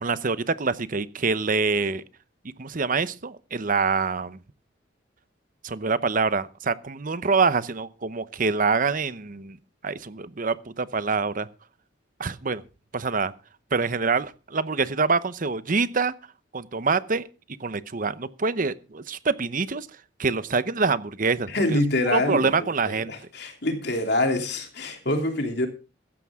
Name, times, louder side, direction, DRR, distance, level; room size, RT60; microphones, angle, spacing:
voice 1, 0.0-2.0 2.6-4.4 5.6-9.6 9.8-11.5 12.2-12.6 12.9-13.3 13.7-16.1 16.5-17.2 17.6-19.9 20.2-21.8 22.1-23.1, right 4 dB, 45° right, 0.8 m, -25 dB
voice 2, 21.5-25.7, left 1 dB, 60° left, 3.0 m, -26 dB
15.5 x 13.0 x 3.6 m
head